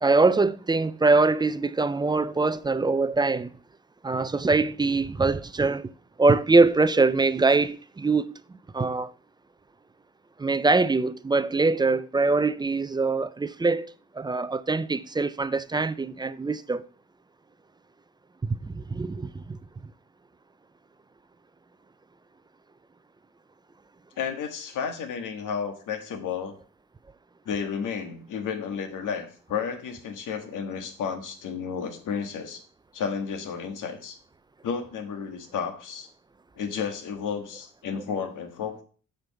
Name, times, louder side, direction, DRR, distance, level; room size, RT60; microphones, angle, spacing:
voice 1, 0.0-3.6 4.0-5.9 6.2-8.3 8.7-9.1 10.4-16.8 18.4-19.6, right 3 dB, 15° right, 0.4 m, -23 dB
voice 2, 24.2-26.5 27.4-32.6 32.9-34.2 34.6-36.1 36.5-38.8, left 6 dB, 85° left, 1.6 m, -32 dB
7.7 x 5.3 x 5.7 m
cardioid pair, 105°, 30 cm